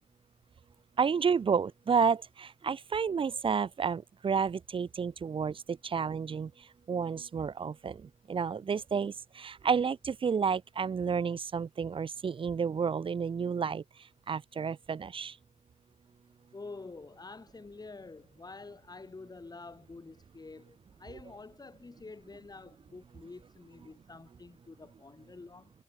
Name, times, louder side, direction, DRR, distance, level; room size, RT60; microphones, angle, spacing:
voice 1, 1.0-6.5 6.9-8.0 8.3-13.8 14.3-15.3, right 6 dB, 40° right, 0.4 m, -30 dB
voice 2, 16.5-25.7, left 3 dB, 30° left, 4.9 m, -48 dB
wide cardioid pair, 165°, 14 cm